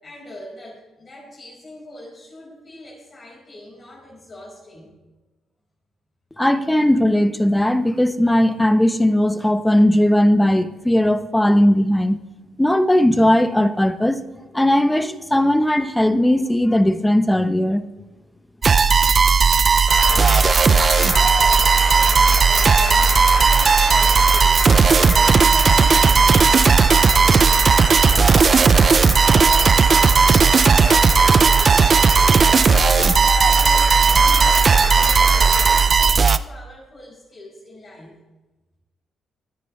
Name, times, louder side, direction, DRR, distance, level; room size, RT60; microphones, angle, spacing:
voice 1, 0.0-4.9 20.0-38.2, left 1 dB, 40° left, 5.4 m, -40 dB
voice 2, 6.4-12.2 12.6-14.2 14.5-17.8, left 1 dB, 5° left, 0.9 m, -17 dB
sound 1, 18.6-36.4, right 5 dB, 40° right, 0.5 m, -15 dB
sound 2, 19.6-25.9, right 1 dB, 15° right, 3.4 m, -31 dB
sound 3, 19.9-35.8, left 4 dB, 65° left, 3.5 m, -29 dB
23.0 x 9.6 x 3.3 m
cardioid pair, 90°, 0 cm